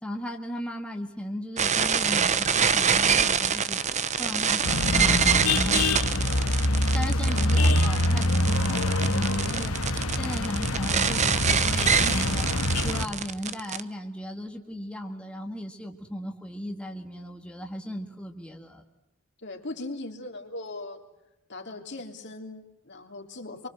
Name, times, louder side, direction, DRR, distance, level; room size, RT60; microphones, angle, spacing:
voice 1, 0.0-3.8 4.2-6.1 6.9-9.8 10.2-12.5 12.8-18.8, equal, 5° left, 2 dB, 1.9 m, -36 dB
sound 1, 1.6-13.8, right 7 dB, 35° right, 1.0 m, -25 dB
sound 2, 4.6-13.1, left 1 dB, 85° left, 2.0 m, -25 dB
voice 2, 19.4-21.0 21.5-23.7, left 2 dB, 55° left, 3 dB, 3.4 m, -39 dB
26.5 x 24.5 x 7.7 m, 0.91 s
head